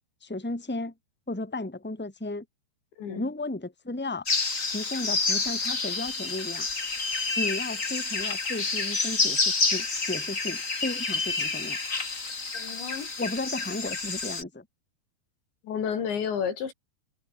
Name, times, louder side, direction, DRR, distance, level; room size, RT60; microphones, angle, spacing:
voice 1, 0.2-0.9 1.3-2.4 3.1-4.3 4.6-6.7 7.4-11.8 13.2-14.6, left 2 dB, ahead, 3.3 m, -34 dB
sound 1, 4.3-14.4, left 4 dB, 25° left, 2.2 m, -29 dB
voice 2, 12.5-13.1 15.6-16.7, left 7 dB, 75° left, 6.2 m, -31 dB
omnidirectional pair, 5.2 m